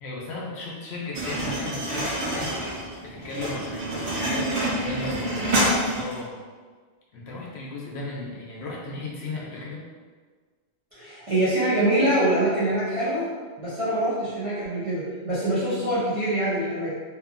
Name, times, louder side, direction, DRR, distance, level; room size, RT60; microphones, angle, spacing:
voice 1, 0.0-6.4 7.1-9.8, left 2 dB, 70° left, -3 dB, 0.9 m, -35 dB
sound 1, 1.1-6.2, right 1 dB, 65° right, 1.0 m, -27 dB
voice 2, 10.9-13.2 13.6-16.9, right 1 dB, 35° right, -12 dB, 0.6 m, -24 dB
2.8 x 2.5 x 2.5 m, 1.5 s
omnidirectional pair, 1.2 m